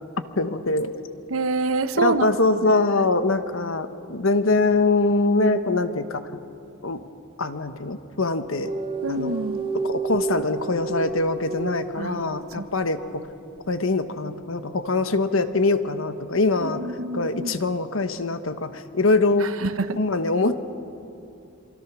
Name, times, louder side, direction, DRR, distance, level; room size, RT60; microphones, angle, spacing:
voice 1, 0.4-0.9 2.0-6.4 6.8-7.0 7.4-8.7 9.1-9.4 9.8-13.3 13.7-16.8 17.1-19.5 20.0-20.6, left 3 dB, 75° left, 10 dB, 1.2 m, -23 dB
voice 2, 1.3-2.3 9.0-9.6 12.0-12.7 16.6-17.6 19.6-20.0, right 3 dB, 85° right, 11 dB, 0.9 m, -27 dB
sound 1, 8.6-12.7, right 4 dB, 25° right, 1.2 m, -30 dB
27.0 x 24.0 x 6.2 m, 2.7 s
head